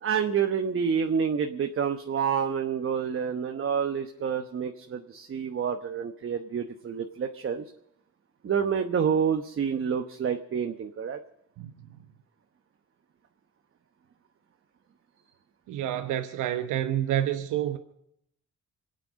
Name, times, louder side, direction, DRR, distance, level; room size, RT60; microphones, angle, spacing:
voice 1, 0.0-7.6 8.4-11.2, right 7 dB, 45° right, 1.1 m, -28 dB
voice 2, 15.7-17.8, right 11 dB, 85° right, 1.0 m, -28 dB
25.0 x 9.1 x 6.4 m
cardioid pair, 90°, 30 cm